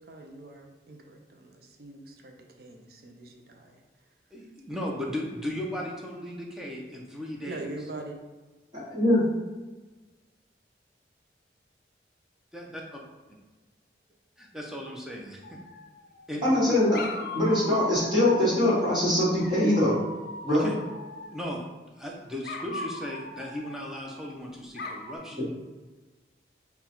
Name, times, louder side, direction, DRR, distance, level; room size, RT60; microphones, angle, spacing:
voice 1, 0.0-3.8 7.5-8.2, right 2 dB, 60° right, 3 dB, 0.5 m, -43 dB
voice 2, 4.3-7.9 12.5-13.0 14.4-15.4 16.3-16.4 20.5-20.7 21.3-21.6 22.0-25.4, left 1 dB, 5° right, -2 dB, 0.5 m, -36 dB
voice 3, 8.9-9.2 16.4-17.0 17.3-20.0 20.4-20.7, left 1 dB, 25° right, -7 dB, 1.3 m, -22 dB
Dog, 15.4-16.3 16.9-18.6 19.4-21.5 22.4-24.3 24.8-25.2, left 2 dB, 55° left, 0.4 m, -40 dB
3.8 x 2.3 x 4.3 m, 1.2 s
head